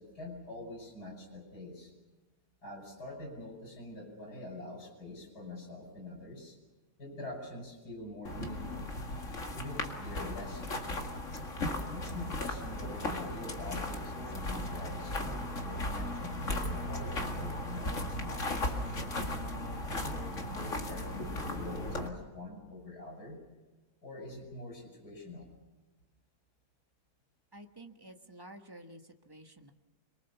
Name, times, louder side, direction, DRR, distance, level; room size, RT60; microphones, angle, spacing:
voice 1, 0.0-1.9 2.6-6.5 7.0-8.9 9.5-11.1 11.8-19.2 19.9-23.4 24.0-25.5, left 2 dB, 90° left, 0 dB, 6.5 m, -45 dB
sound 1, 8.2-22.1, left 1 dB, 50° left, 2.4 m, -36 dB
voice 2, 27.5-29.7, right 1 dB, 15° right, 5 dB, 1.2 m, -51 dB
25.0 x 23.0 x 7.1 m, 1.1 s
omnidirectional pair, 1.7 m